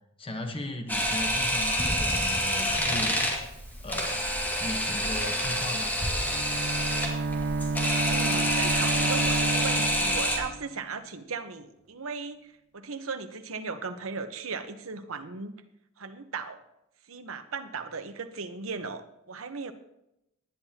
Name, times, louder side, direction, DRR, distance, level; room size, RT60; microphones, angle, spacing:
voice 1, 0.2-3.2 3.8-4.3 4.6-6.0, left 1 dB, 25° left, 4 dB, 1.1 m, -37 dB
Camera, 0.9-10.4, equal, 10° left, 2.0 m, -27 dB
Bowed string instrument, 6.0-10.7, right 3 dB, 55° right, 0.7 m, -31 dB
voice 2, 8.1-15.5 16.0-16.6 17.1-19.7, right 4 dB, 75° right, 8 dB, 1.0 m, -37 dB
19.0 x 10.0 x 2.9 m, 0.85 s
head